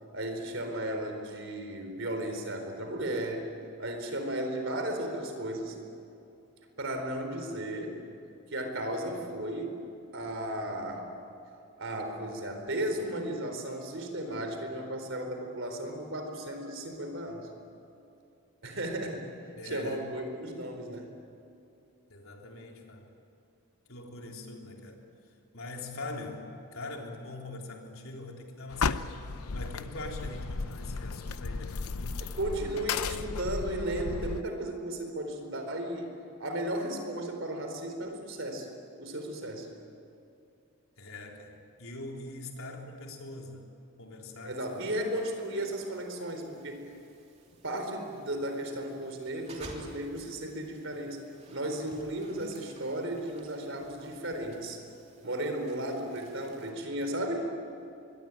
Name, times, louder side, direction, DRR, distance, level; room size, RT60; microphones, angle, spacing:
voice 1, 0.1-3.5 3.8-5.8 6.8-8.0 8.5-9.8 10.1-11.1 11.8-17.5 18.6-19.3 19.6-21.1 32.2-38.7 39.0-39.7 44.4-46.9 47.6-51.2 51.5-54.8 55.2-57.6, right 1 dB, 60° right, 5 dB, 4.3 m, -35 dB
voice 2, 19.6-20.1 22.1-23.1 23.9-25.0 25.5-29.2 29.5-32.2 41.0-43.7 44.0-45.0, left 2 dB, 70° left, 1 dB, 3.7 m, -42 dB
sound 1, 28.7-34.4, left 4 dB, 90° left, 0.7 m, -34 dB
sound 2, 44.5-56.7, right 2 dB, 30° right, 3.1 m, -55 dB
25.0 x 22.5 x 9.1 m, 2.7 s
head